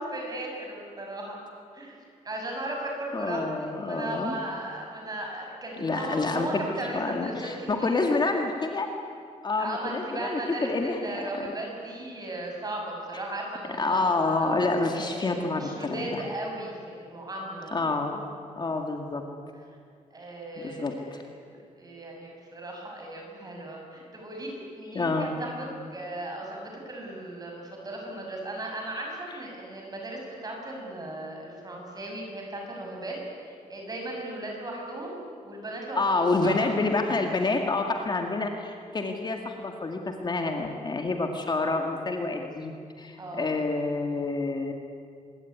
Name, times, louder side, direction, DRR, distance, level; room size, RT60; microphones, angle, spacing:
voice 1, 0.0-1.4 1.7-2.0 2.2-8.1 9.6-14.5 14.9-17.8 20.1-35.1 35.4-36.7 43.2-43.6, right 1 dB, 30° right, 0 dB, 7.6 m, -37 dB
voice 2, 3.1-4.3 5.8-6.6 6.9-8.9 9.4-11.3 13.8-16.2 17.7-18.2 18.6-19.2 20.6-21.2 24.9-25.3 36.0-44.7, left 3 dB, 30° left, 3 dB, 2.2 m, -28 dB
25.0 x 22.5 x 9.7 m, 2.3 s
wide cardioid pair, 140°, 14 cm